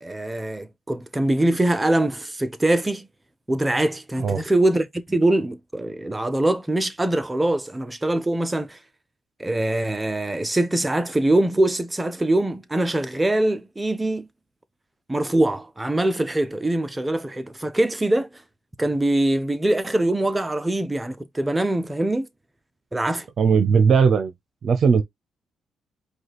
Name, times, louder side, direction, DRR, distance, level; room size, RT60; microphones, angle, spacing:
voice 1, 0.0-3.1 3.5-8.8 9.4-14.3 15.1-18.3 18.8-22.3 22.9-23.3, right 1 dB, 15° right, 0.7 m, -23 dB
voice 2, 23.4-24.3 24.6-25.0, right 6 dB, 55° right, 0.7 m, -17 dB
4.9 x 2.4 x 4.0 m
cardioid pair, 90°, 0 cm